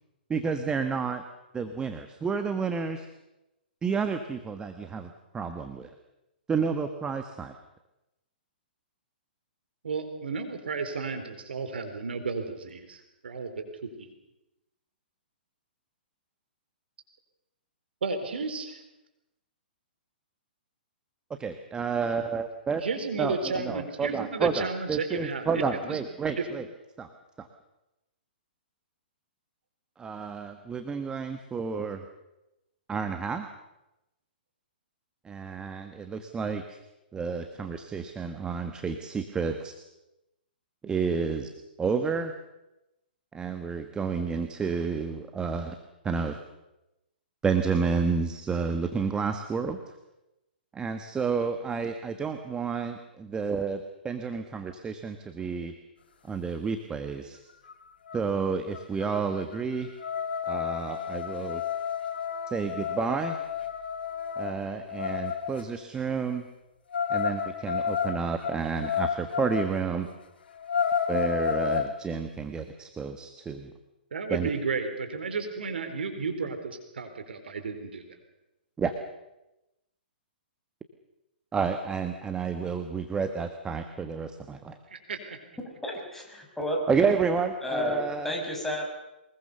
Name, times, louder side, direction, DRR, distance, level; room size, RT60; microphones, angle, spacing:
voice 1, 0.3-1.2 1.5-3.1 3.8-5.9 6.5-7.5 21.3-22.8 23.2-26.7 27.0-27.1 27.4-27.5 30.0-32.0 32.9-33.5 35.2-36.8 37.1-39.7 40.8-41.5 41.8-42.3 43.3-45.8 46.0-46.4 47.4-49.8 50.7-55.7 56.3-57.4 58.1-59.9 60.5-61.6 62.5-63.4 64.4-66.5 67.1-70.1 71.1-73.7 74.3-74.5 78.8-78.9 81.5-84.8 86.9-88.3, right 5 dB, 15° right, 7 dB, 1.4 m, -30 dB
voice 2, 9.8-13.6 14.0-14.1 18.0-18.8 22.8-25.4 25.7-26.0 26.4-26.5 74.1-78.0 84.9-85.2, right 4 dB, 75° right, 8 dB, 4.4 m, -33 dB
sound 1, 57.7-57.8 58.1-58.4 58.7-65.6 66.9-69.7 70.1-70.2 70.6-71.9, left 7 dB, 70° left, 3.1 m, -31 dB
voice 3, 85.8-86.9 87.6-88.8, left 1 dB, 5° left, 0 dB, 5.9 m, -31 dB
23.5 x 21.0 x 6.9 m, 0.94 s
hypercardioid pair, 125°, 6 cm